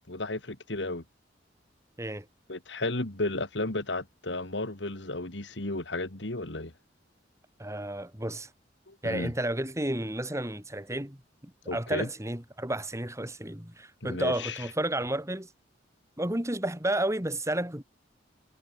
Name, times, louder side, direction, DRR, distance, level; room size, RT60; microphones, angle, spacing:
voice 1, 0.1-1.0 2.5-6.7 8.9-9.3 11.7-12.1 14.0-14.6, left 2 dB, 75° left, 2.6 m, -33 dB
voice 2, 7.6-8.5 9.0-15.5 16.2-17.8, right 1 dB, 15° right, 3.8 m, -32 dB
head